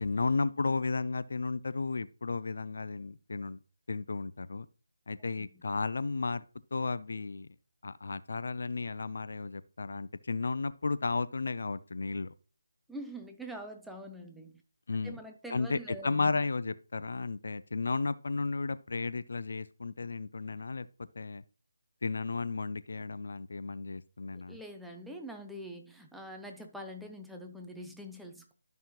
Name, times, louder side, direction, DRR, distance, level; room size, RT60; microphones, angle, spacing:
voice 1, 0.0-3.6 3.9-4.7 5.1-6.4 6.7-7.5 7.8-12.3 14.9-15.2 15.5-20.9 21.2-21.4 22.0-24.6, left 4 dB, 60° left, 0.5 m, -33 dB
voice 2, 12.9-14.5 15.0-16.3 24.3-28.6, equal, ahead, 0.6 m, -44 dB
12.5 x 5.5 x 3.0 m
figure-of-eight pair, 165°, 0 cm